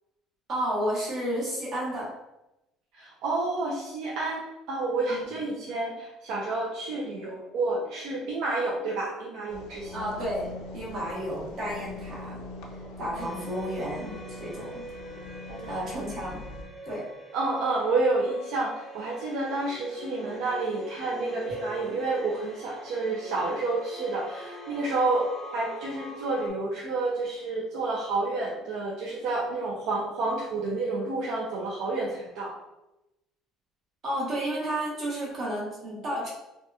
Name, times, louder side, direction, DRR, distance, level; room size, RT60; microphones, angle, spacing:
voice 1, 0.5-2.1 5.1-5.2 9.9-12.4 13.0-14.9 15.7-16.4 16.8-17.0 21.5-21.6 34.0-36.3, right 1 dB, 35° right, -5 dB, 0.9 m, -32 dB
voice 2, 2.9-10.1 15.5-16.0 17.3-32.5, right 3 dB, 65° right, -3 dB, 0.4 m, -29 dB
sound 1, 9.5-16.6, left 2 dB, 75° left, 0.3 m, -42 dB
sound 2, 13.2-26.5, right 1 dB, 5° right, 0.7 m, -43 dB
2.7 x 2.2 x 2.3 m, 0.93 s
cardioid pair, 165°, 0 cm